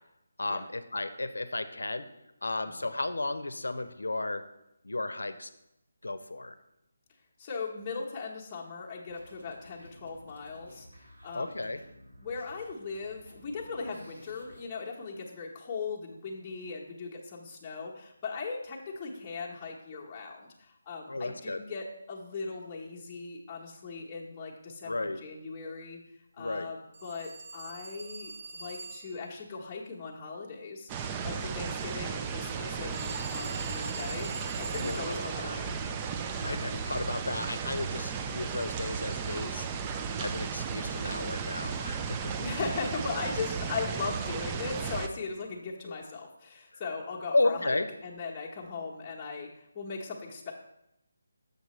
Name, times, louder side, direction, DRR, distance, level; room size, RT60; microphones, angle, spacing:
voice 1, 0.4-2.1 2.4-4.4 4.8-5.5 6.0-6.6 11.3-11.8 21.1-21.6 24.8-25.2 26.4-26.7 34.8-35.6 36.4-42.4 45.9-46.0 47.3-47.9, left 2 dB, 90° left, 11 dB, 0.6 m, -33 dB
voice 2, 7.4-11.7 12.2-26.0 26.4-34.3 34.6-35.8 36.3-36.9 42.4-50.5, left 4 dB, 20° left, -3 dB, 1.0 m, -39 dB
sound 1, 9.1-14.6, equal, 75° right, 1.9 m, -54 dB
Telephone, 26.9-29.2 32.9-35.1, right 4 dB, 50° right, 1.9 m, -43 dB
sound 2, 30.9-45.1, right 6 dB, 20° right, 0.3 m, -35 dB
6.6 x 6.5 x 3.1 m, 0.85 s
figure-of-eight pair, 165°, 0 cm